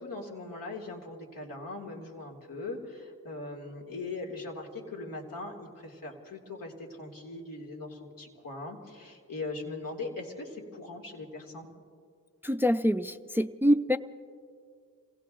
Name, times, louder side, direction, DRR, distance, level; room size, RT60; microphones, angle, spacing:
voice 1, 0.0-11.7, left 3 dB, 85° left, 1 dB, 2.2 m, -40 dB
voice 2, 12.4-14.0, equal, 5° right, 12 dB, 0.4 m, -25 dB
29.0 x 18.0 x 2.5 m, 2.2 s
cardioid pair, 65°, 33 cm